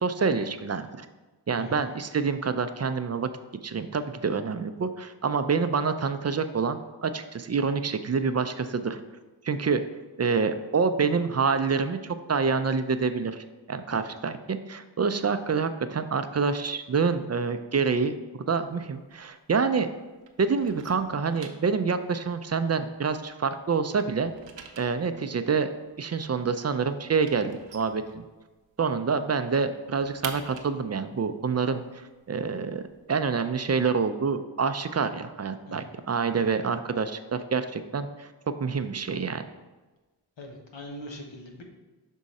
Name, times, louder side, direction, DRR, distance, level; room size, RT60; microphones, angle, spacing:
voice 1, 0.0-1.1 1.5-3.3 3.6-9.0 9.4-9.8 10.2-19.9 20.4-24.3 24.8-25.7 26.0-28.2 28.8-32.8 33.1-38.3 38.6-39.4, right 5 dB, 35° right, 10 dB, 0.4 m, -27 dB
sound 1, 18.5-19.9 20.2-23.4 23.7-28.7 29.1-29.2 29.5-33.2, right 6 dB, 75° right, 0.7 m, -46 dB
voice 2, 40.4-41.6, left 1 dB, 75° left, 2 dB, 1.1 m, -41 dB
6.3 x 3.7 x 4.1 m, 1.2 s
cardioid pair, 40°, 45 cm